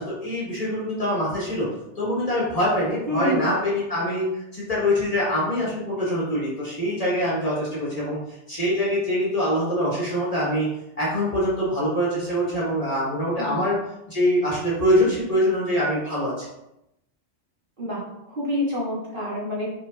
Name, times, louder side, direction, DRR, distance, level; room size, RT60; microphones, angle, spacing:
voice 1, 0.0-1.7 1.9-10.7 11.0-13.8 14.1-16.5, equal, 30° left, -7 dB, 1.7 m, -24 dB
voice 2, 3.1-3.5 13.4-13.6 17.8-19.7, equal, 45° right, -6 dB, 1.5 m, -27 dB
5.3 x 3.7 x 2.6 m, 0.84 s
omnidirectional pair, 1.2 m